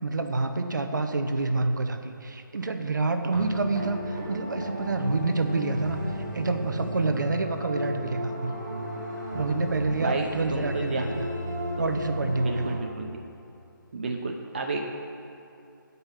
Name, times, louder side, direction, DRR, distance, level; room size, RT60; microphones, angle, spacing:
voice 1, 0.0-6.0 6.3-8.5 9.3-11.2 11.8-12.8, right 3 dB, 60° right, 7 dB, 0.9 m, -28 dB
sound 1, 3.3-12.8, equal, 15° right, 2.6 m, -34 dB
voice 2, 10.0-11.1 12.4-13.2 13.9-14.9, right 3 dB, 30° right, 1 dB, 0.6 m, -31 dB
14.0 x 5.4 x 5.7 m, 2.8 s
hypercardioid pair, 175°, 11 cm